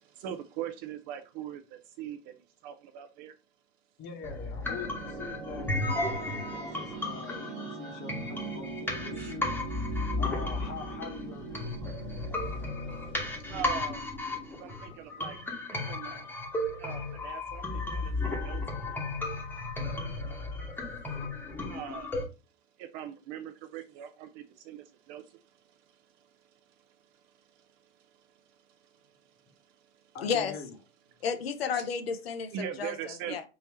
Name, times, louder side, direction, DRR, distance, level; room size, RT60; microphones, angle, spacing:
voice 1, 0.0-3.3 9.2-9.3 13.0-13.1 13.5-14.0 14.5-15.4 15.9-16.3 16.8-18.1 18.4-18.6 21.7-22.2 22.8-30.2 31.7-31.8 32.5-33.4, right 9 dB, 30° right, 0.4 m, -42 dB
voice 2, 4.0-9.5 10.2-11.9 30.1-30.7, left 5 dB, 35° left, 1.0 m, -44 dB
sound 1, 4.1-15.1, right 4 dB, 60° right, 0.8 m, -42 dB
sound 2, 4.2-22.2, left 2 dB, 5° left, 1.0 m, -34 dB
voice 3, 30.2-30.5 31.2-32.9 33.3-33.4, left 6 dB, 70° left, 0.7 m, -31 dB
3.6 x 3.0 x 3.0 m
figure-of-eight pair, 100°, 32 cm